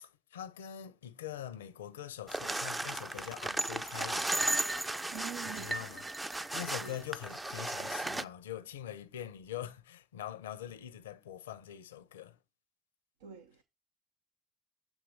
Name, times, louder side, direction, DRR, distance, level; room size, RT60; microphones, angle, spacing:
voice 1, 0.0-4.3 5.4-6.1 6.5-12.4, left 11 dB, 85° left, 0.5 m, -43 dB
sound 1, 2.3-8.2, right 2 dB, 15° right, 0.5 m, -35 dB
voice 2, 5.1-5.9 6.8-7.0 13.2-13.6, right 8 dB, 80° right, 0.6 m, -46 dB
8.1 x 3.0 x 6.2 m
hypercardioid pair, 60°, 0 cm